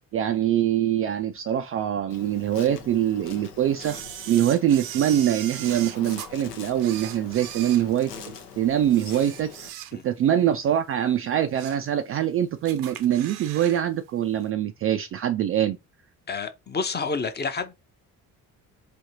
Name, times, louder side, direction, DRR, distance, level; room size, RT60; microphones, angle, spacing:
voice 1, 0.1-4.0 4.3-8.1 8.6-9.7 10.0-15.8, right 10 dB, 30° right, 0.4 m, -24 dB
Insect, 2.1-9.7, left 6 dB, 80° left, 0.8 m, -44 dB
Camera, 3.8-6.3 6.8-8.4 8.8-10.2 10.6-10.8 11.3-11.9 12.2-12.3 12.7-13.8 14.1-14.2, right 11 dB, 65° right, 0.7 m, -39 dB
voice 2, 16.3-17.7, left 4 dB, 20° left, 0.7 m, -29 dB
4.9 x 2.7 x 2.7 m
figure-of-eight pair, 45°, 46 cm